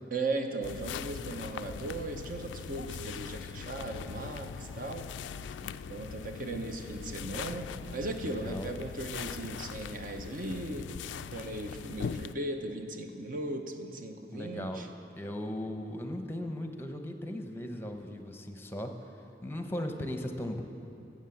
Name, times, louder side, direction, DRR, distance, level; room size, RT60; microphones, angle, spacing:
voice 1, 0.1-5.1 5.6-14.9, right 2 dB, 50° right, 5 dB, 0.9 m, -37 dB
sound 1, 0.6-12.3, left 7 dB, 80° left, 0.3 m, -41 dB
voice 2, 8.3-8.7 14.3-14.8 15.2-18.9 19.4-20.6, left 1 dB, 10° left, 5 dB, 0.8 m, -37 dB
13.0 x 7.5 x 7.7 m, 2.7 s
head